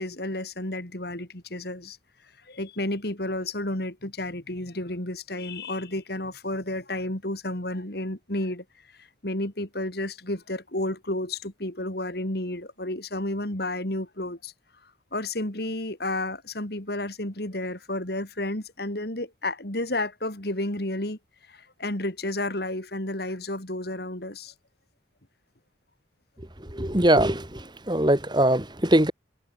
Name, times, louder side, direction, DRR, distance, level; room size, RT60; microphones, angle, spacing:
voice 1, 0.0-2.0 2.5-8.6 9.0-14.5 15.1-21.2 21.5-24.5, left 1 dB, 55° left, 3.3 m, -31 dB
voice 2, 26.7-29.1, right 1 dB, 25° right, 2.6 m, -22 dB
head